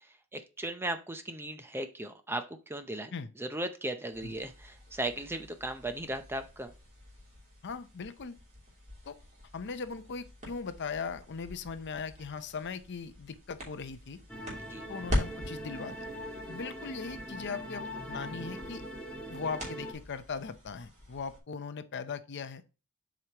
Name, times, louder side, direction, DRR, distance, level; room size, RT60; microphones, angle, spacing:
voice 1, 0.3-6.7 14.6-14.8, right 1 dB, 10° right, 0.6 m, -37 dB
sound 1, 4.1-21.4, left 1 dB, 35° right, 3.1 m, -43 dB
voice 2, 7.6-8.4 9.1-9.2 9.5-14.2 14.9-16.0 16.5-18.8 19.3-22.6, left 5 dB, 50° left, 0.6 m, -39 dB
sound 2, 14.3-19.9, equal, 5° left, 1.4 m, -41 dB
7.7 x 5.0 x 2.9 m
head